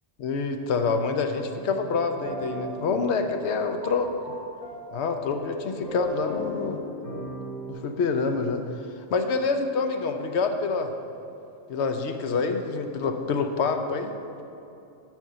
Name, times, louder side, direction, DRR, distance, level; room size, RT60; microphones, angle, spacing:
voice 1, 0.2-4.3 4.9-6.8 7.7-8.6 9.1-10.9 11.7-14.1, left 4 dB, 70° left, 6 dB, 0.9 m, -27 dB
sound 1, 1.5-7.7, left 1 dB, 60° right, 2.7 m, -38 dB
10.5 x 4.4 x 6.8 m, 2.7 s
omnidirectional pair, 1.2 m